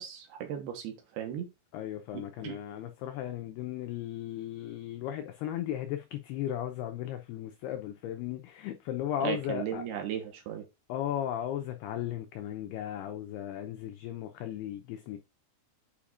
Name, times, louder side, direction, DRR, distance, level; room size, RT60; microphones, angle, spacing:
voice 1, 0.0-1.5 2.1-2.6 9.2-10.7, right 9 dB, 70° right, 2.8 m, -36 dB
voice 2, 1.7-9.8 10.9-15.2, left 11 dB, 90° left, 2.2 m, -36 dB
8.6 x 5.0 x 2.5 m
omnidirectional pair, 5.4 m